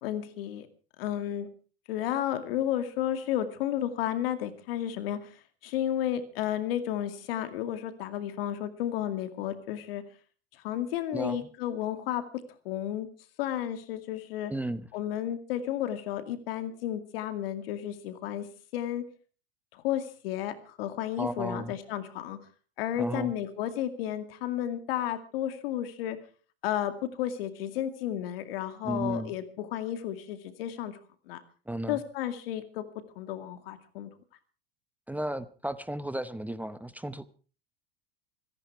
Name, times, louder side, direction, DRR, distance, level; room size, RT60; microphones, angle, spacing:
voice 1, 0.0-0.7 1.0-1.5 1.9-5.2 5.6-10.0 10.6-12.2 12.6-13.1 13.4-14.5 14.9-18.5 18.7-19.0 19.8-22.4 22.8-26.2 26.6-26.9 27.2-31.0 31.3-31.4 31.9-32.8 33.2-34.1, left 11 dB, 75° left, 2.3 m, -32 dB
voice 2, 11.1-11.5 14.5-14.9 21.2-21.8 23.0-23.3 28.8-29.3 31.7-32.0 35.1-37.3, right 1 dB, 5° right, 0.8 m, -34 dB
25.0 x 10.5 x 4.6 m
supercardioid pair, 105°, 29 cm